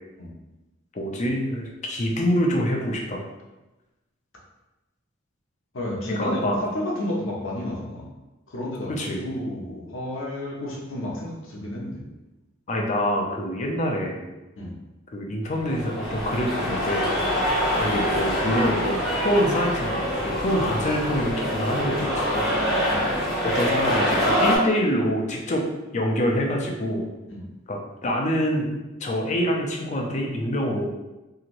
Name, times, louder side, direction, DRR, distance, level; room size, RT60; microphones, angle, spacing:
voice 1, 0.9-3.2 6.1-6.6 8.9-9.2 12.7-14.2 15.1-17.1 17.8-22.9 23.4-25.6 25.9-27.1 27.7-28.7 29.0-30.8, equal, 35° left, 0 dB, 0.5 m, -26 dB
voice 2, 5.7-8.1 8.5-8.9 9.2-12.0 14.6-14.7 22.8-23.1 27.3-27.4, left 1 dB, 70° left, -2 dB, 0.7 m, -31 dB
sound 1, 15.6-24.6, equal, ahead, 0.9 m, -25 dB
3.0 x 2.8 x 2.5 m, 1.0 s
head